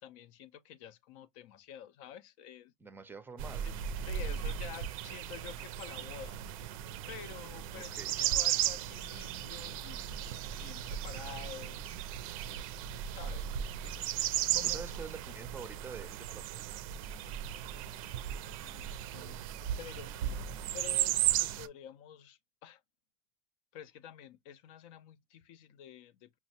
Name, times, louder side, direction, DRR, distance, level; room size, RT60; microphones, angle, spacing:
voice 1, 0.0-2.7 3.7-3.8 4.1-6.4 7.1-11.8 12.7-13.5 13.8-14.1 14.5-14.8 18.6-19.4 19.8-20.4 20.7-22.8 23.7-26.4, left 10 dB, 70° left, 0.5 m, -49 dB
voice 2, 2.8-3.7 7.7-8.1 14.6-16.6, right 5 dB, 10° right, 0.4 m, -46 dB
sound 1, 3.4-21.7, right 11 dB, 80° right, 0.4 m, -36 dB
5.5 x 2.1 x 2.8 m
supercardioid pair, 130°, 17 cm